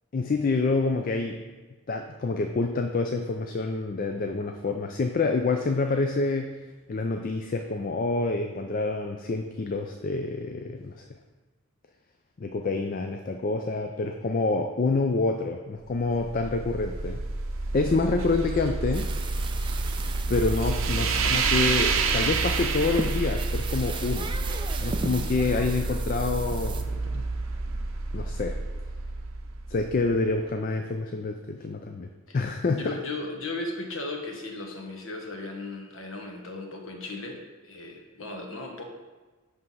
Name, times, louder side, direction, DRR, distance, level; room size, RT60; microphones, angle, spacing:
voice 1, 0.1-1.4 1.9-6.6 6.9-11.0 12.4-17.2 17.7-19.1 20.3-24.3 24.8-27.3 28.1-28.6 29.7-32.9, left 3 dB, 40° left, 4 dB, 0.4 m, -27 dB
sound 1, 16.0-30.1, right 3 dB, 70° right, 0.7 m, -29 dB
sound 2, 18.9-26.8, right 4 dB, 20° right, 0.4 m, -37 dB
voice 2, 20.9-21.4 32.3-32.4 32.7-38.8, left 2 dB, 65° left, 2 dB, 1.2 m, -36 dB
9.4 x 3.4 x 5.6 m, 1.3 s
head